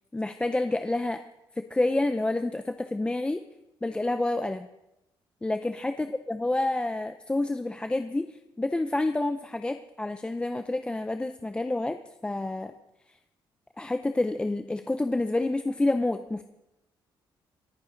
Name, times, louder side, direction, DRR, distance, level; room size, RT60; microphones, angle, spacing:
voice 1, 0.1-1.2 1.6-3.4 3.8-4.7 5.4-12.7 13.8-16.4, left 2 dB, 10° left, 8 dB, 0.5 m, -28 dB
27.5 x 9.3 x 3.9 m, 0.91 s
cardioid pair, 135°, 9 cm